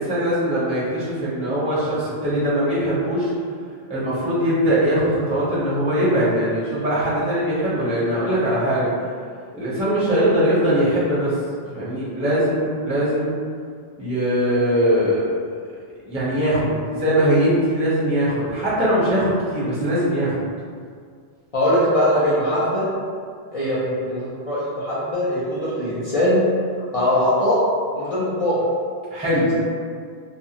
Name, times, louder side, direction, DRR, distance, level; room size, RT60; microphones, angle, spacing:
voice 1, 0.0-3.3 3.9-8.9 9.5-11.3 11.7-13.3 14.0-15.3 16.1-20.3 23.8-23.9 29.1-29.5, equal, 10° right, -9 dB, 0.5 m, -21 dB
voice 2, 21.5-22.8 23.5-23.8 24.1-26.4 26.9-27.6 27.9-28.5 29.4-29.5, left 1 dB, 50° left, -9 dB, 0.4 m, -21 dB
2.5 x 2.3 x 2.8 m, 2.1 s
omnidirectional pair, 1.1 m